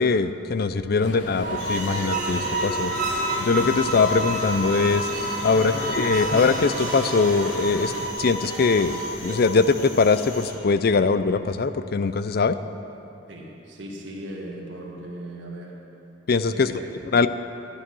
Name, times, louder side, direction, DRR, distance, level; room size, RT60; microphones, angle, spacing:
voice 1, 0.0-2.9 3.4-5.1 5.4-7.9 8.2-12.6 16.3-16.7 17.1-17.3, left 4 dB, 55° left, 12 dB, 0.4 m, -21 dB
sound 1, 1.0-8.1, left 2 dB, 70° left, 1.1 m, -36 dB
sound 2, 1.2-10.6, right 2 dB, 45° right, 2.3 m, -30 dB
sound 3, 1.6-10.5, left 2 dB, 90° left, 2.6 m, -40 dB
voice 2, 5.5-5.9 13.3-15.8 16.5-17.3, right 1 dB, 75° right, -3 dB, 1.7 m, -38 dB
11.5 x 11.5 x 6.2 m, 2.9 s
head